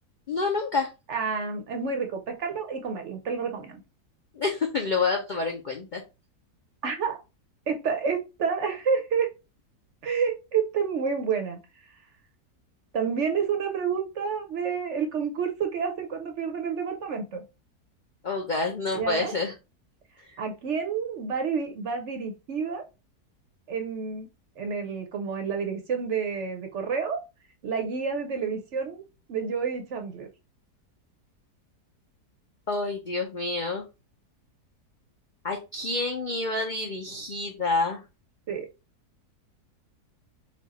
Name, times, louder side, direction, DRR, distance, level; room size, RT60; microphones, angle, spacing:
voice 1, 0.3-0.9 4.4-6.0 18.2-19.5 32.7-33.8 35.4-38.0, left 3 dB, 70° left, 1 dB, 0.4 m, -28 dB
voice 2, 1.1-3.8 6.8-7.2 7.7-9.3 10.0-11.6 12.9-17.4 18.9-19.3 20.4-22.8 23.7-24.3 24.6-27.2 27.6-29.0 29.3-30.3 38.5-38.7, right 6 dB, 60° right, 5 dB, 0.8 m, -29 dB
4.3 x 2.3 x 4.0 m, 0.28 s
omnidirectional pair, 1.7 m